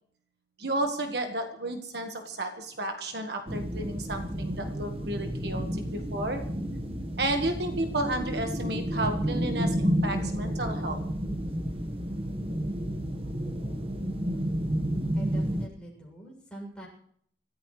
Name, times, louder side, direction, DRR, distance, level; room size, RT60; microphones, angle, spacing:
voice 1, 0.6-6.4 7.2-11.0, right 1 dB, 60° right, 4 dB, 1.5 m, -32 dB
sound 1, 3.5-15.7, equal, 30° right, 1.4 m, -31 dB
voice 2, 15.1-16.9, right 1 dB, 5° left, -3 dB, 7.2 m, -43 dB
26.0 x 14.5 x 3.2 m, 0.67 s
head